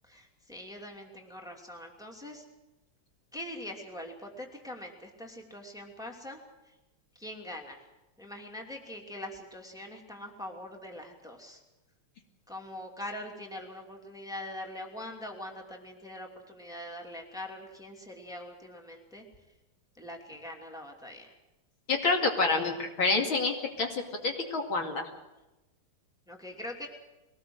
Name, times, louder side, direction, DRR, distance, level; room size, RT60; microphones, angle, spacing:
voice 1, 0.0-2.4 3.3-6.8 7.1-7.8 8.2-11.6 12.5-19.2 19.9-21.3 26.3-26.9, left 1 dB, ahead, 2 dB, 2.7 m, -43 dB
voice 2, 21.9-25.1, left 3 dB, 65° left, 3 dB, 3.1 m, -28 dB
22.0 x 18.5 x 7.9 m, 1.0 s
omnidirectional pair, 2.4 m